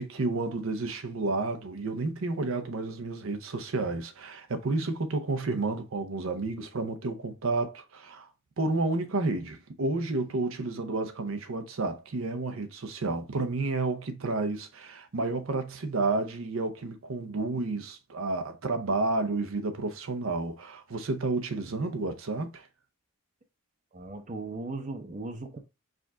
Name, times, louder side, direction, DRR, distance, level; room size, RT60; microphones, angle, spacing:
voice 1, 0.0-8.3 8.6-22.7, right 3 dB, 75° right, 0.7 m, -31 dB
voice 2, 23.9-25.6, right 3 dB, 35° right, 0.7 m, -37 dB
5.0 x 2.4 x 3.5 m
head